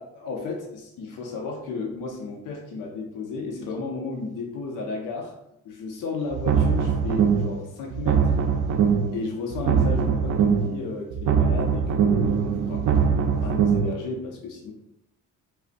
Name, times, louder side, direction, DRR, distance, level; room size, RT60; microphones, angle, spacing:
voice 1, 0.0-5.3 5.6-8.3 9.1-12.9 13.4-14.7, left 3 dB, 90° left, 0 dB, 0.7 m, -33 dB
sound 1, 6.3-7.6 7.9-9.2 9.5-10.8 11.1-13.9, right 6 dB, 80° right, 0.5 m, -22 dB
5.0 x 2.1 x 2.5 m, 0.82 s
cardioid pair, 165°, 31 cm